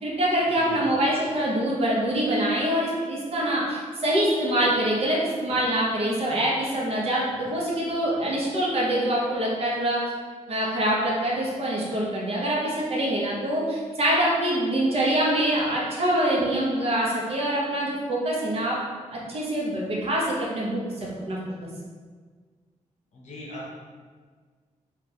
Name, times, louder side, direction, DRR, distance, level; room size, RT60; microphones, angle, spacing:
voice 1, 0.0-10.0 10.5-18.8 19.1-21.7, right 1 dB, 55° right, -4 dB, 0.8 m, -25 dB
voice 2, 23.1-23.7, left 1 dB, 65° left, -4 dB, 0.9 m, -39 dB
2.8 x 2.4 x 3.9 m, 1.5 s
wide cardioid pair, 165°, 13 cm